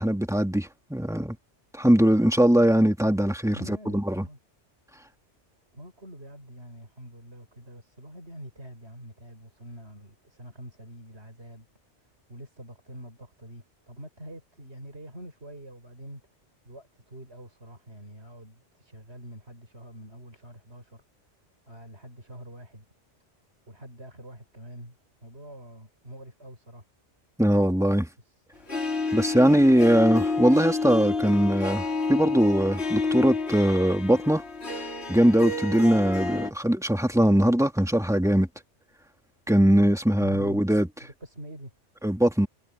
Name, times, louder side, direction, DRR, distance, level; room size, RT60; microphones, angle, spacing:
voice 1, 0.0-1.4 1.7-4.3 27.4-28.1 29.1-34.4 35.1-38.5 39.5-40.9 42.0-42.5, right 1 dB, 5° right, 1.9 m, -21 dB
voice 2, 3.5-4.4 5.7-11.7 12.3-16.2 16.6-21.0 21.7-22.9 23.7-26.8 28.2-28.4 40.2-40.6 41.0-41.7, equal, 60° right, 6.9 m, -45 dB
Harp, 28.7-36.5, left 3 dB, 60° left, 3.8 m, -29 dB
omnidirectional pair, 1.2 m